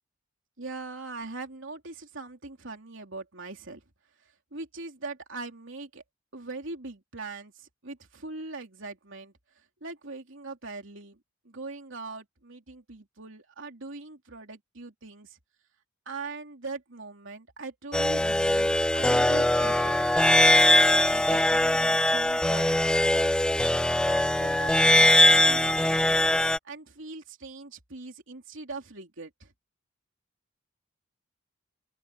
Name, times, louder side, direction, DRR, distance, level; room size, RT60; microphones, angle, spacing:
voice 1, 0.6-3.8 4.5-6.0 6.3-9.3 9.8-11.2 11.5-15.4 16.1-19.9 20.8-22.9 23.8-26.2 26.6-29.5, right 3 dB, 65° right, 3.4 m, -41 dB
sound 1, 17.9-26.6, left 1 dB, 5° left, 0.4 m, -21 dB
open air
head